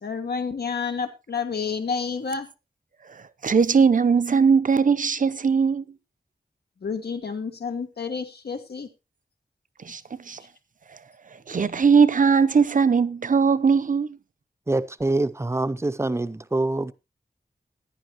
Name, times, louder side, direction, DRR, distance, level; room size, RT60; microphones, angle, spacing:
voice 1, 0.0-2.5 6.8-8.9, left 5 dB, 85° left, 1.5 m, -29 dB
voice 2, 3.1-5.8 9.8-10.0 10.3-10.4 11.5-14.2, right 5 dB, 55° right, 0.7 m, -20 dB
voice 3, 14.7-16.9, right 2 dB, 15° right, 0.6 m, -25 dB
15.5 x 10.0 x 3.0 m
wide cardioid pair, 100°, 16 cm